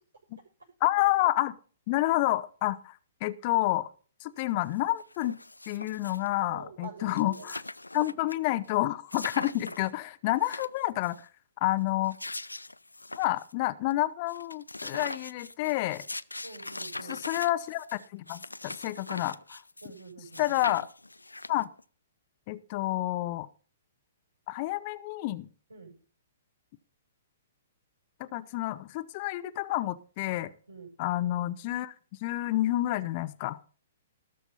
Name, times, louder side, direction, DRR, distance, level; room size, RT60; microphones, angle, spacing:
voice 1, 0.8-1.5 1.9-3.9 4.2-5.4 5.7-7.6 7.9-11.3 11.6-12.1 13.2-16.0 17.1-19.6 20.4-20.9 21.5-21.7 22.5-23.5 24.5-25.5 28.2-30.5 31.0-31.9 32.2-33.6, left 16 dB, 40° left, 14 dB, 0.8 m, -29 dB
sound 1, 4.4-4.5 4.7-6.4 6.8-6.9 7.1-8.4 8.7-8.8 9.1-9.9 10.3-11.2 11.9-13.5 13.9-14.0 14.3-20.0 20.3-21.8, left 2 dB, 85° left, 0.4 m, -41 dB
voice 2, 6.4-7.5 9.5-9.7 16.4-17.2 19.8-20.6 25.7-25.9 30.7-30.9, right 4 dB, 80° right, 2 dB, 7.5 m, -46 dB
19.0 x 7.0 x 4.2 m, 0.40 s
figure-of-eight pair, 115°, 0 cm